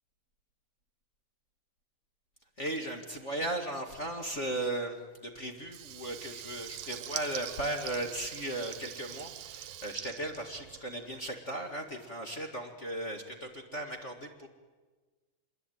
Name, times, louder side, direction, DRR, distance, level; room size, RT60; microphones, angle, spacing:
voice 1, 2.6-14.5, right 1 dB, 30° left, 2 dB, 1.4 m, -37 dB
Water tap faucet / Liquid, 5.6-11.1, right 12 dB, 90° right, 2.9 m, -43 dB
27.0 x 22.0 x 9.3 m, 1.4 s
omnidirectional pair, 4.0 m